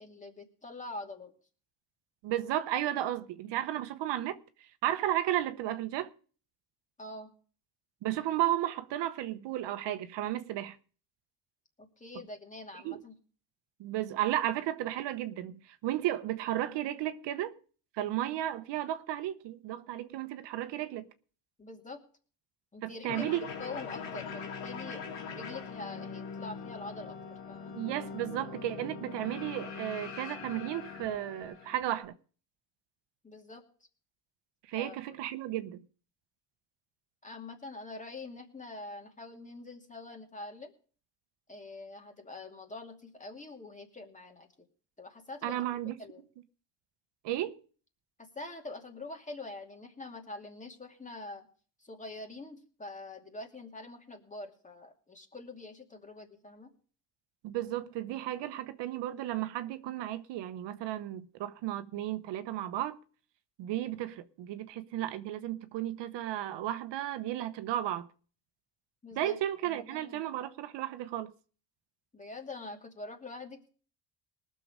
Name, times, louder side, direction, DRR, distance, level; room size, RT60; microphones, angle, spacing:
voice 1, 0.0-1.3 7.0-7.3 11.8-13.2 21.6-22.0 22.7-25.1 25.3-27.2 27.5-27.7 33.2-33.6 34.7-35.0 37.2-40.7 41.5-44.5 45.0-46.2 48.2-51.5 51.8-56.7 69.0-69.4 69.7-70.2 72.1-73.7, left 2 dB, 15° left, 2.5 m, -45 dB
voice 2, 2.2-4.4 4.8-6.1 8.0-10.8 12.8-13.0 13.8-17.5 18.0-21.1 22.8-23.5 27.7-32.1 34.7-35.8 45.4-46.0 47.2-47.5 57.4-63.0 63.6-68.1 69.2-71.3, right 13 dB, 75° right, 1.0 m, -34 dB
sound 1, 23.1-32.0, left 5 dB, 90° left, 2.6 m, -42 dB
19.5 x 6.9 x 5.0 m
cardioid pair, 105°, 43 cm